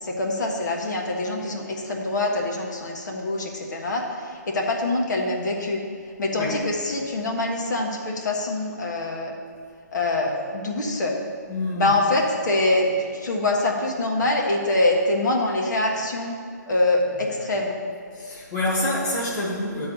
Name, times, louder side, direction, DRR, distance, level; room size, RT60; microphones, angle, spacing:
voice 1, 0.0-5.8 6.2-9.3 9.9-11.2 11.7-16.4 16.7-17.8, left 2 dB, 70° left, 0 dB, 1.5 m, -24 dB
voice 2, 11.5-11.9 18.1-19.9, left 1 dB, 25° left, -6 dB, 1.3 m, -27 dB
8.9 x 3.9 x 7.1 m, 2.2 s
hypercardioid pair, 160°, 10 cm